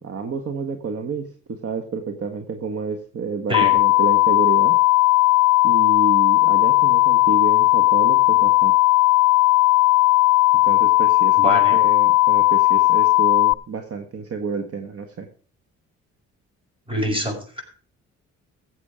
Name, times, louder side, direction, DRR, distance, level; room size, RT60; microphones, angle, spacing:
voice 1, 0.0-4.7 5.6-8.7 10.6-15.3, right 5 dB, 50° right, 6 dB, 1.6 m, -29 dB
sound 1, 3.5-13.5, left 18 dB, 65° left, 0.5 m, -16 dB
voice 2, 11.4-11.8 16.9-17.6, equal, 15° right, 3 dB, 6.1 m, -25 dB
15.0 x 8.3 x 5.0 m, 0.42 s
cardioid pair, 90°, 30 cm